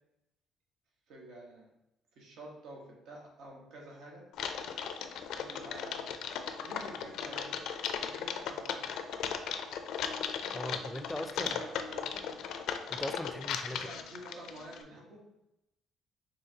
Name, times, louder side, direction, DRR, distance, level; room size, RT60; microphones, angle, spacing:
voice 1, 1.1-1.7 2.2-4.2 5.4-6.1 6.6-7.5 8.1-8.9 11.2-12.4 13.6-15.2, right 1 dB, 75° right, -2 dB, 1.1 m, -49 dB
Typing, 4.3-14.8, left 7 dB, 75° left, 0.4 m, -37 dB
voice 2, 10.5-11.6 12.9-13.9, left 1 dB, 5° left, 9 dB, 0.3 m, -39 dB
5.6 x 3.0 x 2.8 m, 0.90 s
cardioid pair, 110°, 0 cm